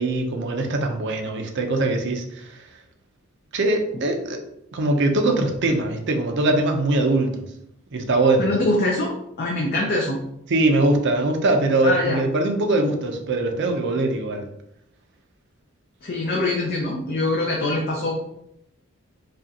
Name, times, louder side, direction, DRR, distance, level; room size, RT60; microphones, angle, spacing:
voice 1, 0.0-2.6 3.5-4.4 4.7-7.4 7.9-8.5 10.5-14.5, right 2 dB, 55° right, 4 dB, 0.6 m, -22 dB
voice 2, 8.4-10.2 11.8-12.2 16.0-18.2, left 2 dB, 45° left, -1 dB, 0.6 m, -24 dB
5.0 x 2.4 x 2.8 m, 0.77 s
head